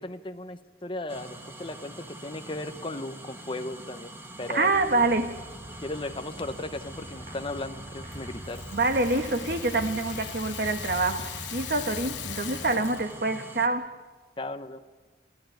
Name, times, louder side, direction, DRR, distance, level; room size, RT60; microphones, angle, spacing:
voice 1, 0.0-4.1 4.4-4.7 5.8-8.6 14.4-14.8, left 2 dB, 30° left, 0.9 m, -36 dB
sound 1, 1.1-13.7, right 1 dB, 15° right, 1.6 m, -44 dB
voice 2, 4.5-5.5 8.7-13.9, right 2 dB, 55° right, 1.5 m, -26 dB
sound 2, 4.7-12.7, equal, 40° right, 8.0 m, -44 dB
Rattle (instrument), 8.1-13.2, left 12 dB, 90° left, 1.1 m, -40 dB
29.0 x 14.0 x 9.2 m
head